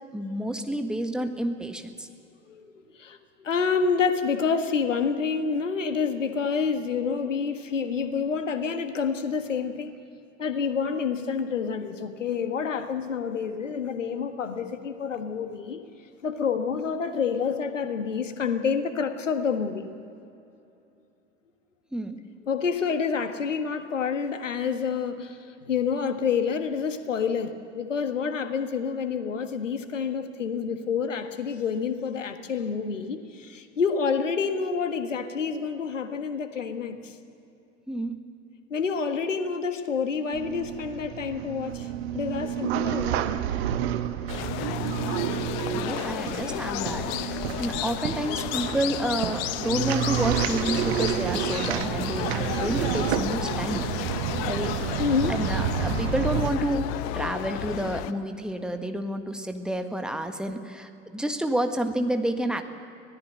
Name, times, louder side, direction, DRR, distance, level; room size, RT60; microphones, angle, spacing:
voice 1, 0.1-2.1 21.9-22.2 37.9-38.1 45.7-53.9 54.4-54.7 55.3-56.9 57.1-62.6, right 1 dB, ahead, 6 dB, 1.6 m, -29 dB
voice 2, 2.5-9.9 10.4-15.9 16.2-19.9 22.5-37.2 38.7-43.3 55.0-55.4, left 6 dB, 75° left, 8 dB, 1.6 m, -28 dB
sound 1, 40.3-56.5, right 10 dB, 55° right, 1.3 m, -30 dB
sound 2, 44.3-58.1, left 12 dB, 45° left, 1.0 m, -32 dB
25.0 x 17.5 x 8.0 m, 2.7 s
figure-of-eight pair, 80°, 38 cm